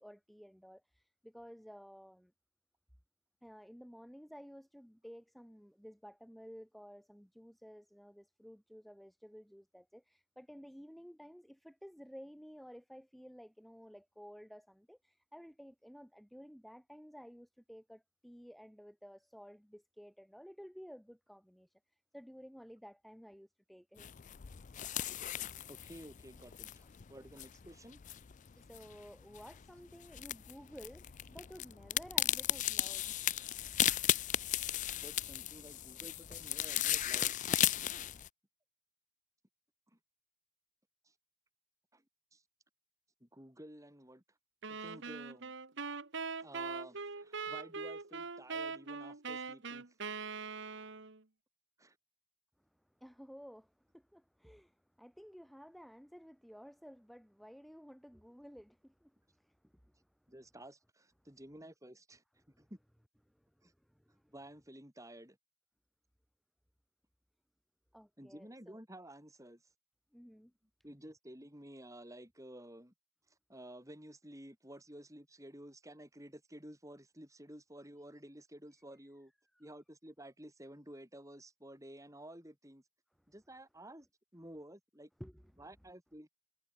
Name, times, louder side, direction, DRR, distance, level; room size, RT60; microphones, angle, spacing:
voice 1, 0.0-2.3 3.4-21.7 22.1-24.4 28.6-33.2 53.0-59.9 62.5-62.7 63.3-63.5 63.8-64.3 67.9-68.8 70.1-70.5 85.2-85.4, equal, ahead, 3.1 m, -54 dB
sound 1, 24.0-38.3, left 12 dB, 35° left, 0.4 m, -36 dB
voice 2, 25.7-28.0 35.0-37.4 39.9-40.0 41.0-41.1 41.9-42.0 42.3-42.4 43.2-44.2 44.7-45.5 46.4-49.9 51.8-52.0 60.3-62.8 63.6-63.7 64.3-65.4 68.2-69.6 70.8-72.9 73.3-79.3 79.6-82.8 83.3-84.1 84.3-85.1 85.6-86.3, right 1 dB, 15° right, 7.5 m, -53 dB
sound 2, 44.6-51.2, right 4 dB, 55° right, 1.5 m, -42 dB
head